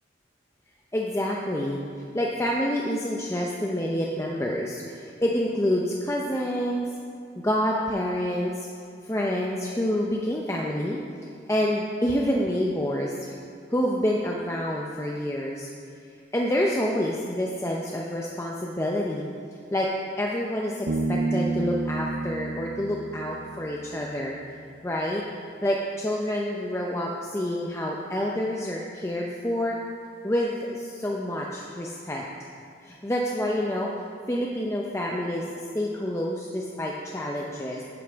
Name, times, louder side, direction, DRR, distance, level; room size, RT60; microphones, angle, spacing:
voice 1, 0.9-1.8 2.1-6.8 7.4-8.7 9.0-11.0 11.5-13.4 13.7-15.7 16.3-19.3 19.7-19.9 20.2-24.4 24.8-25.2 25.6-29.8 30.2-32.3 32.8-33.9 34.3-35.4 35.7-37.8, left 1 dB, 15° left, -2 dB, 0.5 m, -27 dB
Bass guitar, 20.9-24.4, right 3 dB, 75° right, 0.8 m, -30 dB
11.0 x 10.0 x 3.5 m, 2.3 s
head